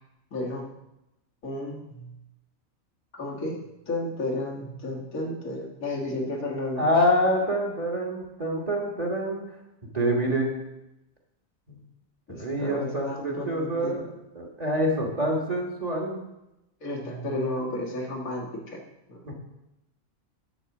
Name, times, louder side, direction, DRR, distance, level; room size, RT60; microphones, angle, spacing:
voice 1, 0.3-0.7 1.4-2.1 3.1-6.9 12.3-14.1 16.8-18.8 19.1-19.3, left 1 dB, 85° left, -1 dB, 2.1 m, -33 dB
voice 2, 6.8-9.4 9.9-10.5 11.7-11.8 12.3-14.1 14.3-16.3 17.6-17.7 19.3-19.4, equal, 30° right, -1 dB, 1.6 m, -26 dB
10.0 x 4.2 x 7.1 m, 0.91 s
omnidirectional pair, 1.4 m